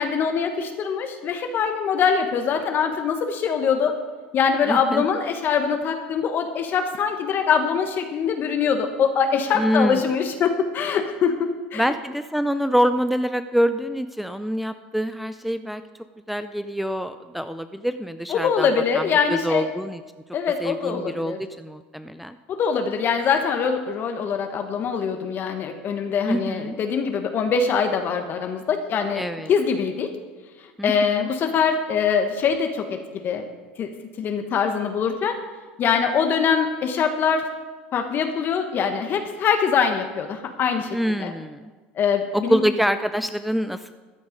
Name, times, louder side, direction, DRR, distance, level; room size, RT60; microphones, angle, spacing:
voice 1, 0.0-3.9 4.3-11.3 11.7-11.8 18.3-19.7 20.3-21.4 22.5-29.2 29.5-30.1 30.8-33.5 33.8-33.9 34.2-35.4 35.8-37.5 37.9-41.3 42.0-42.6, left 6 dB, 45° left, 5 dB, 1.3 m, -23 dB
voice 2, 4.6-5.1 9.5-10.0 11.7-15.8 16.3-18.7 18.9-20.0 20.6-22.4 26.3-26.8 29.1-29.5 30.8-31.3 40.9-41.7 42.3-43.9, equal, ahead, 10 dB, 0.5 m, -25 dB
14.0 x 9.3 x 5.2 m, 1.3 s
supercardioid pair, 95°, 5 cm